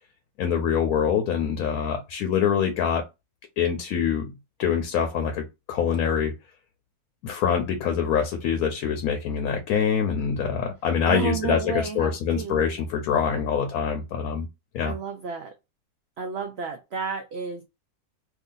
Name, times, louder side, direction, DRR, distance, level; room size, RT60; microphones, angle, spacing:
voice 1, 0.4-3.1 3.6-4.3 4.6-6.3 7.2-14.5 14.7-14.9, left 7 dB, 70° left, 1.0 m, -25 dB
voice 2, 11.1-12.6 14.8-15.5 16.2-17.6, right 5 dB, 70° right, 0.6 m, -31 dB
2.8 x 2.6 x 3.8 m
omnidirectional pair, 1.6 m